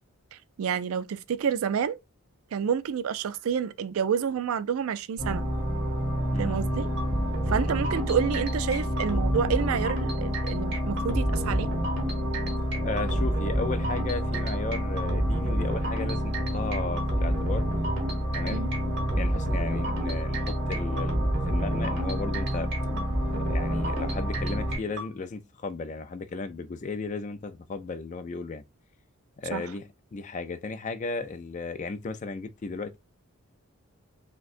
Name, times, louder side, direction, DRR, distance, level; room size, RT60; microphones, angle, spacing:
voice 1, 0.3-2.0 2.5-5.5 6.4-6.9 7.5-11.7 18.5-18.7 29.5-29.6, right 7 dB, 70° right, 0.3 m, -29 dB
sound 1, 5.2-24.8, equal, 25° right, 2.7 m, -29 dB
sound 2, 7.0-25.1, right 1 dB, 50° right, 1.2 m, -31 dB
voice 2, 12.8-17.6 18.3-18.6 19.1-22.7 23.4-28.6 29.4-33.0, left 3 dB, 35° left, 0.3 m, -35 dB
6.1 x 2.2 x 2.5 m
head